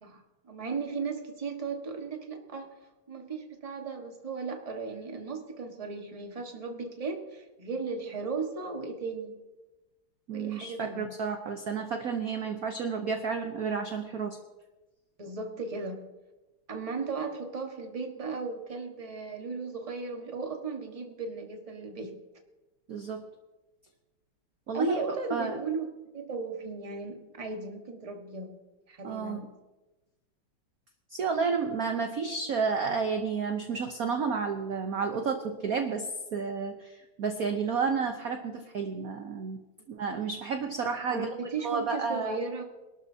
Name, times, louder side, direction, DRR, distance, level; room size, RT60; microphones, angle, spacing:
voice 1, 0.0-2.7 3.1-9.4 10.3-11.2 15.2-16.1 16.7-22.2 24.7-28.6 28.9-29.5 41.1-42.6, right 4 dB, 20° right, 3 dB, 1.3 m, -36 dB
voice 2, 10.3-14.4 22.9-23.2 24.7-25.0 25.3-25.6 29.0-29.4 31.1-36.1 36.3-36.9 37.2-39.6 40.0-41.3 41.6-42.4, right 5 dB, 55° right, 5 dB, 1.1 m, -31 dB
24.5 x 12.5 x 2.8 m, 1.1 s
omnidirectional pair, 2.4 m